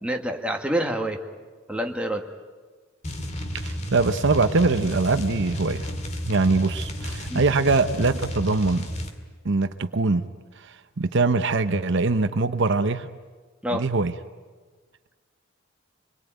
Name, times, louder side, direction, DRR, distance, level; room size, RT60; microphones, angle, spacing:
voice 1, 0.0-1.2 1.7-2.2 7.3-7.4 13.6-13.9, right 1 dB, 5° right, 2 dB, 1.8 m, -27 dB
sound 1, 3.0-9.2, equal, 35° left, 2.1 m, -32 dB
voice 2, 3.5-5.9 6.2-8.9 9.4-10.2 10.6-13.1 13.7-14.1, right 3 dB, 60° right, 10 dB, 0.8 m, -23 dB
26.0 x 22.0 x 9.1 m, 1.4 s
head